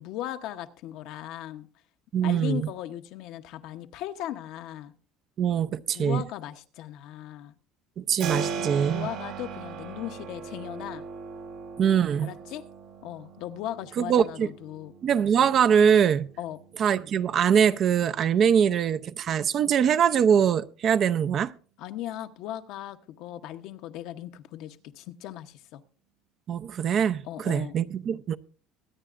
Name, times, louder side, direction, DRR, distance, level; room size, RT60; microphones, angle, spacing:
voice 1, 0.0-1.7 2.2-4.9 5.9-7.5 8.3-8.6 8.9-11.0 12.2-12.6 13.0-14.9 16.4-16.6 21.8-25.8 27.2-27.7, left 13 dB, 70° left, 0.8 m, -37 dB
voice 2, 2.1-2.7 5.4-6.2 8.0-9.1 11.8-12.3 14.0-14.5 15.0-16.3 16.8-21.5 26.5-28.4, right 8 dB, 45° right, 0.5 m, -23 dB
Keyboard (musical), 8.2-18.9, right 5 dB, 70° right, 2.6 m, -39 dB
23.5 x 9.1 x 2.5 m
supercardioid pair, 110°, 0 cm